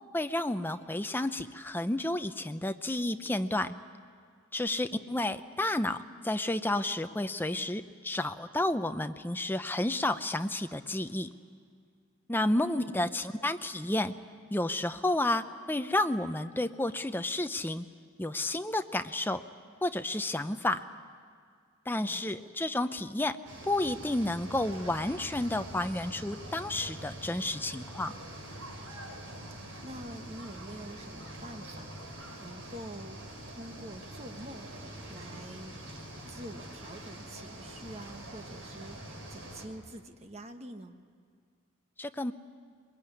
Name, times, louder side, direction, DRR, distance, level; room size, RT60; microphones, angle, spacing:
voice 1, 0.1-3.7 4.5-11.3 12.3-14.1 14.5-17.9 18.2-19.4 19.8-20.8 21.9-23.4 23.6-28.1 42.0-42.3, left 1 dB, 10° left, 9 dB, 0.6 m, -31 dB
voice 2, 4.6-5.1 12.5-13.5 22.0-22.5 29.5-34.7 35.1-35.8 36.3-41.0, right 1 dB, 30° right, 6 dB, 1.3 m, -47 dB
sound 1, 23.4-39.7, right 1 dB, 65° right, 4.8 m, -45 dB
22.5 x 21.5 x 9.9 m, 2.1 s
head